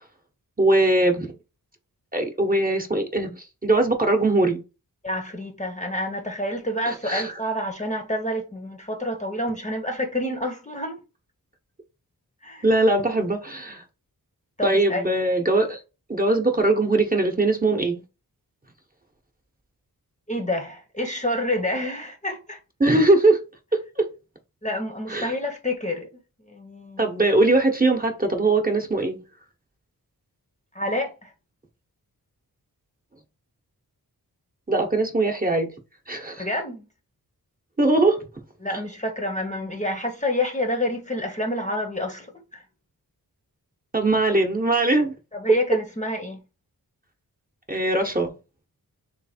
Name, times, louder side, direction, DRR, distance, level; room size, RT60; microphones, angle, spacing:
voice 1, 0.6-1.3 2.1-4.6 6.9-7.4 12.6-13.8 14.6-15.8 16.1-18.0 22.8-23.4 24.0-24.1 25.1-25.3 27.0-29.2 34.7-35.7 36.1-36.5 37.8-38.3 43.9-45.1 47.7-48.3, right 2 dB, 25° right, 1.0 m, -21 dB
voice 2, 5.0-11.0 12.4-12.7 14.6-15.1 20.3-22.6 24.6-26.1 26.5-27.2 30.7-31.3 36.4-36.9 38.6-42.6 45.3-46.4, left 1 dB, 20° left, 0.8 m, -28 dB
3.2 x 3.2 x 4.3 m
wide cardioid pair, 60°, 37 cm